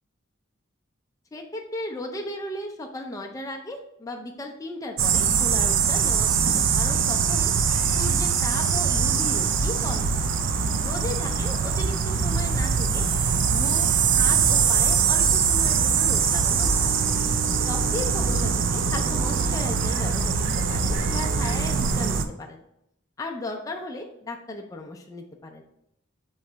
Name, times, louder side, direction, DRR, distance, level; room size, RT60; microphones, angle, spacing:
voice 1, 1.3-7.5 8.0-10.2 10.8-13.0 13.5-17.0 17.7-22.6 23.2-25.6, left 2 dB, 15° left, 1 dB, 0.4 m, -36 dB
sound 1, 5.0-22.2, right 6 dB, 70° right, 0.4 m, -22 dB
3.8 x 3.1 x 4.5 m, 0.78 s
head